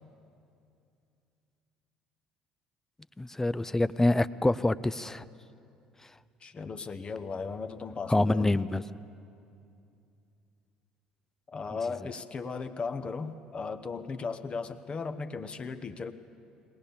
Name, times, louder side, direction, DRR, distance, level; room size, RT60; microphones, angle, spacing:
voice 1, 3.2-5.2 6.0-6.1 8.1-8.8, left 2 dB, 15° left, 15 dB, 0.5 m, -26 dB
voice 2, 6.4-8.5 11.5-16.1, left 4 dB, 35° left, 9 dB, 1.0 m, -36 dB
22.0 x 18.5 x 6.9 m, 2.6 s
hypercardioid pair, 60°, 3 cm